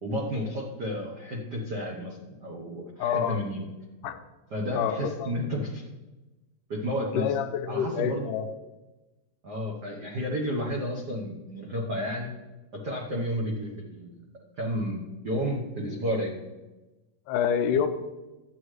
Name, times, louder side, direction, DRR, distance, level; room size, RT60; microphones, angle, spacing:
voice 1, 0.0-3.6 4.5-5.8 6.7-7.3 7.7-8.3 9.4-12.3 12.7-14.2 14.6-16.3, equal, 85° right, -1 dB, 0.9 m, -32 dB
voice 2, 3.0-3.4 4.0-4.2 4.7-5.3 7.1-8.5 17.3-17.9, left 8 dB, 85° left, 7 dB, 2.2 m, -27 dB
11.5 x 8.7 x 3.2 m, 1.1 s
omnidirectional pair, 3.8 m